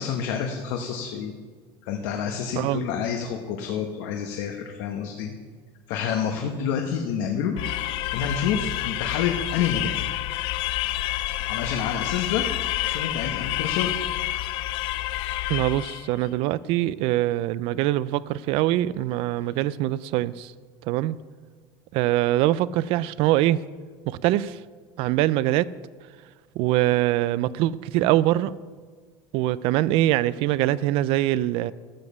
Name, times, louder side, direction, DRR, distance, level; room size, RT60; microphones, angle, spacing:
voice 1, 0.0-1.3 1.8-5.3 5.9-7.6 8.1-10.0 11.5-12.4 12.8-13.9, left 7 dB, 75° left, 3 dB, 1.1 m, -28 dB
voice 2, 2.6-2.9 15.5-20.5 20.9-21.2 21.9-23.6 24.1-24.6 25.0-25.7 26.6-28.5 29.3-31.7, right 15 dB, 55° right, 19 dB, 0.4 m, -23 dB
sound 1, 7.6-16.1, left 15 dB, 50° left, 0.4 m, -28 dB
13.0 x 7.3 x 6.9 m, 1.5 s
cardioid pair, 165°, 11 cm